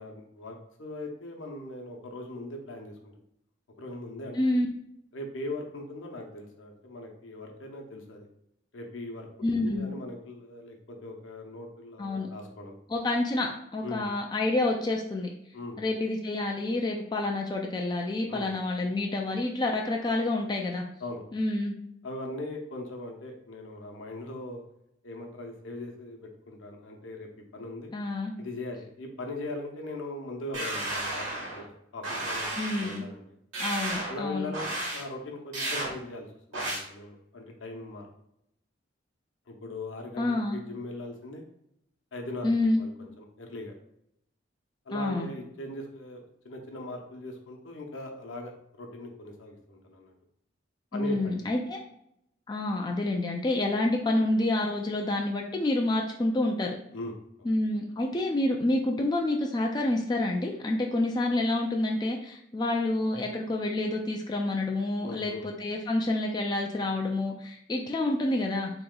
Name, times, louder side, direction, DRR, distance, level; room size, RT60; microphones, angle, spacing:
voice 1, 0.0-3.2 3.8-4.5 5.1-8.3 8.7-12.8 13.8-14.0 15.5-15.8 18.3-18.5 21.0-21.2 22.0-24.6 25.0-27.9 28.4-33.2 34.1-38.1 39.5-41.4 42.1-42.5 42.8-43.7 44.8-50.1 50.9-51.3 56.9-57.5 65.0-65.5, left 2 dB, 85° left, 2 dB, 0.7 m, -40 dB
voice 2, 4.3-4.7 9.4-9.9 12.0-12.3 12.9-15.3 15.8-20.8 21.3-21.7 27.9-28.3 32.6-33.0 33.6-34.5 40.2-40.6 42.4-42.8 44.9-45.3 50.9-51.8 52.5-56.8 57.5-68.7, left 2 dB, 20° left, 1 dB, 0.3 m, -28 dB
sound 1, 30.5-31.6 32.0-33.0 33.5-34.2 34.5-35.0 35.5-35.9 36.5-36.8, right 1 dB, 90° right, 1.2 m, -33 dB
3.1 x 3.0 x 3.7 m, 0.77 s
head